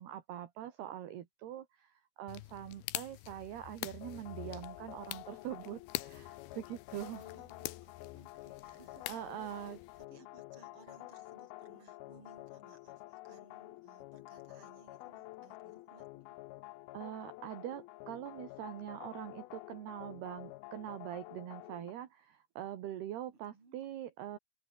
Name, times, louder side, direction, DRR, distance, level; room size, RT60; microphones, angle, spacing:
voice 1, 0.0-7.2 9.1-9.8 16.9-24.4, right 12 dB, 65° right, 3.6 m, -43 dB
sound 1, 2.3-10.1, left 17 dB, 75° left, 2.5 m, -45 dB
sound 2, 4.0-21.9, left 19 dB, 90° left, 2.2 m, -50 dB
voice 2, 7.1-9.2 9.5-16.1 23.3-23.8, right 4 dB, 30° right, 5.9 m, -62 dB
omnidirectional pair, 5.2 m